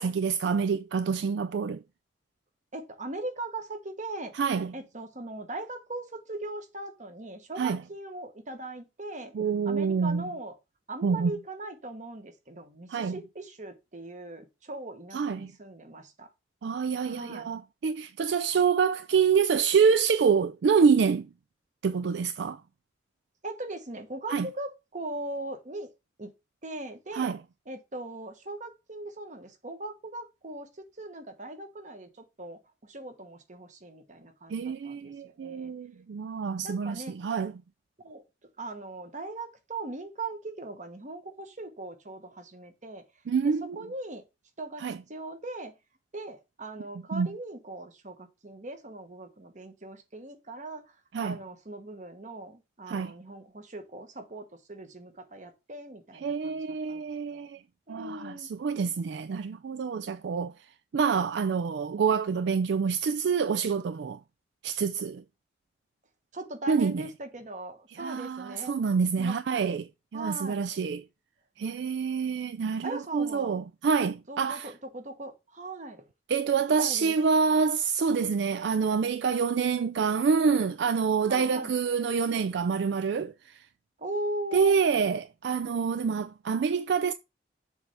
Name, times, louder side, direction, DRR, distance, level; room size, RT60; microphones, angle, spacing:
voice 1, 0.0-1.8 4.3-4.7 7.6-7.8 9.3-10.3 11.0-11.3 12.9-13.2 15.1-15.5 16.6-21.3 21.8-22.6 24.3-24.5 27.1-27.4 34.5-37.5 43.3-43.8 44.8-45.0 47.1-47.3 51.1-51.4 52.9-53.1 56.1-57.6 57.9-60.5 60.9-64.2 64.6-65.2 66.7-67.1 67.9-71.0 71.6-74.7 76.3-83.6 84.5-87.1, right 5 dB, 65° right, 0.4 m, -27 dB
voice 2, 2.7-4.3 4.7-9.3 9.6-10.5 10.9-16.3 17.1-17.5 23.4-25.9 26.2-26.3 26.6-27.3 27.7-30.7 31.0-35.7 36.6-37.2 38.0-38.2 38.6-43.0 43.6-44.2 44.6-45.7 46.1-50.8 51.2-56.6 56.9-57.0 57.3-57.5 57.9-58.5 66.3-68.8 69.2-69.4 70.1-70.6 72.8-73.6 74.3-76.1 76.8-77.1 81.3-81.7 84.0-84.7, right 2 dB, 40° right, 1.2 m, -39 dB
7.0 x 3.4 x 5.6 m
head